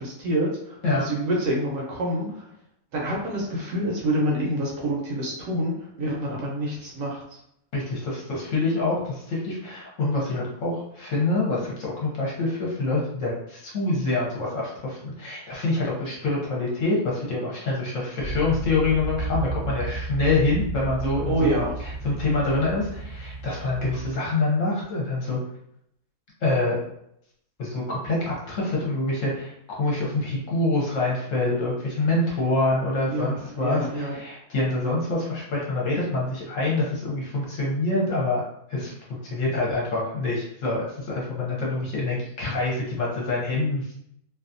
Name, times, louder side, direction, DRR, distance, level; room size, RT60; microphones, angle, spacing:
voice 1, 0.0-2.5 2.9-7.2 21.3-21.7 33.1-34.1, right 1 dB, 65° right, -3 dB, 1.0 m, -27 dB
voice 2, 7.7-21.5 21.8-25.4 26.4-26.8 27.6-38.4 38.7-43.9, left 2 dB, 60° left, -4 dB, 1.0 m, -26 dB
sound 1, 18.2-24.1, right 2 dB, 35° left, 0.7 m, -33 dB
2.7 x 2.3 x 2.5 m, 0.75 s
omnidirectional pair, 1.6 m